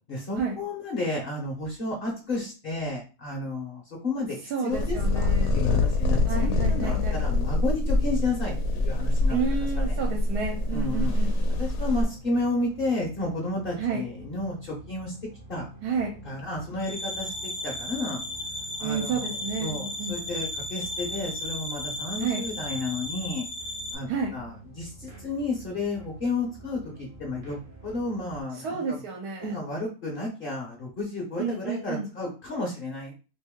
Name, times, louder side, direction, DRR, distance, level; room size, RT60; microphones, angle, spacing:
voice 1, 0.1-9.5 9.8-10.0 10.7-11.2 11.6-15.1 15.5-15.7 16.2-18.2 18.8-19.3 19.6-23.4 23.9-29.0 29.4-33.1, left 2 dB, 45° left, -1 dB, 0.8 m, -32 dB
voice 2, 4.5-5.6 6.3-7.2 9.3-11.3 13.8-14.0 15.8-16.1 18.8-20.2 22.2-22.4 24.1-24.4 28.6-29.5 31.4-32.1, right 5 dB, 70° right, 0 dB, 1.2 m, -30 dB
sound 1, 4.7-12.0, left 2 dB, 70° left, 1.2 m, -25 dB
sound 2, 10.1-28.4, right 2 dB, 40° right, 0.6 m, -47 dB
sound 3, 16.8-23.9, left 1 dB, 25° left, 0.3 m, -35 dB
3.0 x 2.6 x 3.6 m, 0.34 s
omnidirectional pair, 1.8 m